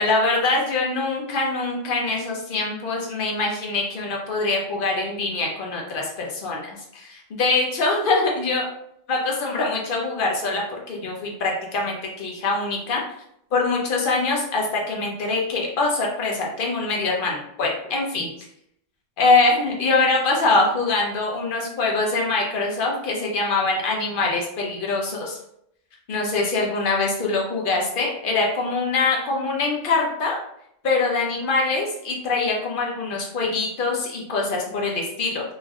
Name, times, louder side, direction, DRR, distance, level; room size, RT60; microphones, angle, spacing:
voice 1, 0.0-8.7 9.1-13.0 13.5-18.3 19.2-25.4 26.1-30.4 30.8-35.4, left 3 dB, 50° left, -1 dB, 0.7 m, -23 dB
3.1 x 2.6 x 2.3 m, 0.73 s
omnidirectional pair, 1.3 m